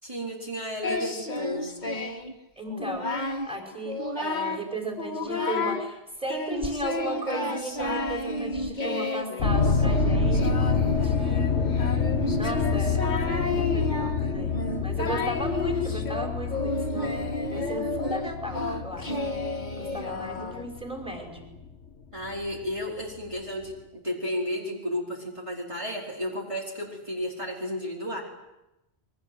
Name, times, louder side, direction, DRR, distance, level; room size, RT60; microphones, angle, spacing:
voice 1, 0.0-1.8 22.1-28.2, equal, 30° right, -4 dB, 4.8 m, -33 dB
Singing, 0.8-2.3 2.7-3.5 3.8-4.7 5.0-5.9 6.3-20.8, left 2 dB, 40° left, 2.3 m, -31 dB
voice 2, 2.6-12.0 12.4-17.2 17.5-19.4 19.8-21.5, right 1 dB, 5° right, 2 dB, 5.5 m, -36 dB
sound 1, 9.4-21.7 22.2-22.6 23.2-23.3 23.6-23.7, left 4 dB, 80° left, 1.8 m, -27 dB
30.0 x 23.0 x 8.0 m, 0.94 s
omnidirectional pair, 1.1 m